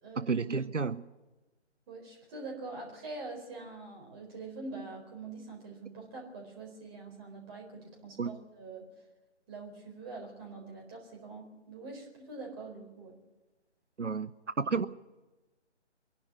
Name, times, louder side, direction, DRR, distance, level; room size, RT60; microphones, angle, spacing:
voice 1, 0.2-1.0 8.2-8.3 14.0-14.3 14.6-14.9, right 5 dB, 90° right, 14 dB, 0.8 m, -31 dB
voice 2, 1.9-8.9 9.5-13.1, right 3 dB, 20° right, -1 dB, 4.1 m, -44 dB
23.0 x 11.5 x 9.8 m, 1.2 s
figure-of-eight pair, 145°, 35 cm